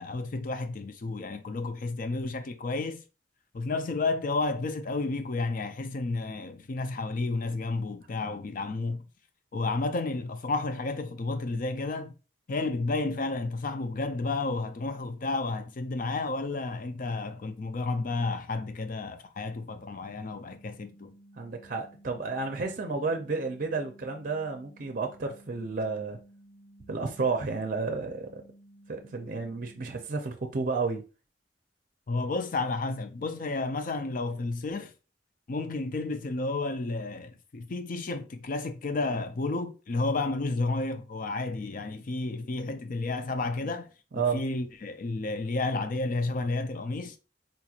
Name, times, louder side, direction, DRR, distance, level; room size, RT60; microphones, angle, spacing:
voice 1, 0.0-3.0 3.5-9.0 9.5-12.1 12.5-21.1 32.1-34.9 35.5-43.9 44.3-47.2, left 3 dB, 50° left, 0.5 m, -31 dB
sound 1, 20.1-30.1, right 1 dB, 5° left, 1.2 m, -55 dB
voice 2, 21.4-26.2 26.9-28.4 28.9-31.0 43.6-43.7 44.1-44.4, right 4 dB, 50° right, 0.6 m, -31 dB
4.0 x 2.9 x 2.4 m
head